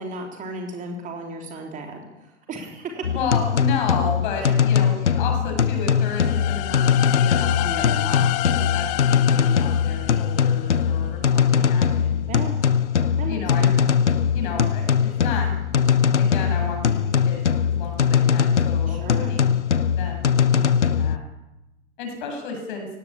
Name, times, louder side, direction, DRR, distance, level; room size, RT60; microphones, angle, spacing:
voice 1, 0.0-3.2 4.4-4.5 7.6-8.2 12.3-12.6 13.2-13.7 18.9-19.3, right 2 dB, 20° right, 2 dB, 3.5 m, -35 dB
sound 1, 3.0-21.2, left 7 dB, 75° left, 0.9 m, -21 dB
voice 2, 3.1-12.5 13.3-13.8 14.3-15.5 16.2-19.6 19.9-21.2 22.0-22.9, left 5 dB, 45° left, 3 dB, 7.9 m, -32 dB
sound 2, 6.0-10.9, left 17 dB, 25° left, 0.7 m, -30 dB
19.0 x 17.5 x 8.6 m, 0.98 s
figure-of-eight pair, 105°, 35 cm